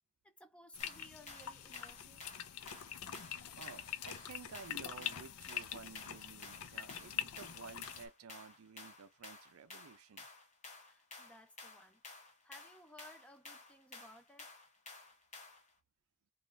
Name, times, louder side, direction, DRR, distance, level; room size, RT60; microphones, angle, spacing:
voice 1, 0.2-2.2 10.8-14.5, equal, 5° left, 0.4 m, -59 dB
sound 1, 0.7-8.1, left 10 dB, 75° left, 0.6 m, -44 dB
sound 2, 0.8-15.7, left 3 dB, 30° left, 1.1 m, -54 dB
voice 2, 3.5-10.3, right 5 dB, 75° right, 0.4 m, -53 dB
3.2 x 2.4 x 3.9 m
head